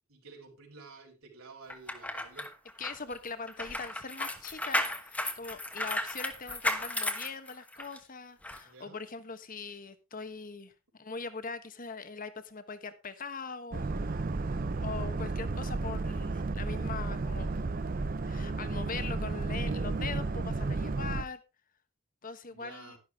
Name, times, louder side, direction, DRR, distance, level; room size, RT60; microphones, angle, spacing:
voice 1, 0.1-2.5 8.6-9.1 22.5-23.0, right 3 dB, 80° right, 1 dB, 4.4 m, -51 dB
sound 1, 1.7-8.0 8.4-8.6, left 1 dB, 5° left, 1.1 m, -34 dB
voice 2, 2.8-14.2 14.8-17.5 18.2-21.4 22.2-23.0, left 4 dB, 40° left, 11 dB, 1.2 m, -41 dB
Boat Water vehicle, 13.7-21.2, right 3 dB, 40° right, 0.5 m, -33 dB
12.0 x 11.5 x 3.5 m, 0.28 s
head